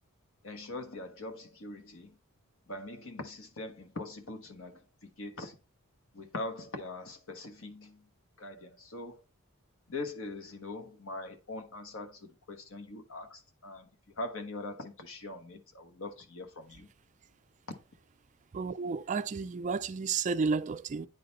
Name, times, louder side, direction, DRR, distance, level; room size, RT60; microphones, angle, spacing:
voice 1, 0.4-2.2 2.7-5.6 6.1-8.1 8.4-9.2 9.9-13.9 14.2-16.9, left 2 dB, 60° left, 1.4 m, -42 dB
voice 2, 18.5-21.1, right 5 dB, 35° right, 0.3 m, -32 dB
9.4 x 4.0 x 4.0 m
head